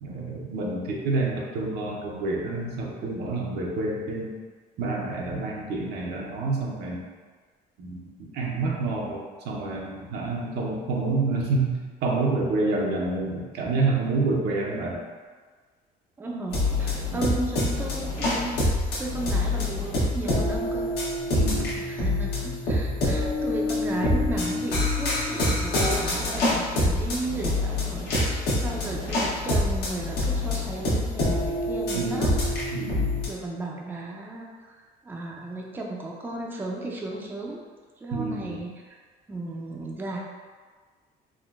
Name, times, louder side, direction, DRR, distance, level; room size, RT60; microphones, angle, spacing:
voice 1, 0.0-4.3 4.8-7.0 7.8-8.0 8.3-9.2 9.5-15.0 17.1-17.2 21.3-21.7 31.9-32.3 32.7-33.2 38.1-38.5, right 3 dB, 80° right, -2 dB, 0.6 m, -28 dB
voice 2, 16.2-20.9 21.9-32.5 33.2-37.6 38.0-39.0 39.3-40.2, right 2 dB, 10° right, -1 dB, 0.4 m, -34 dB
sound 1, 16.5-33.3, left 1 dB, 70° left, 0.9 m, -26 dB
3.5 x 2.1 x 2.4 m, 1.5 s
cardioid pair, 110°, 17 cm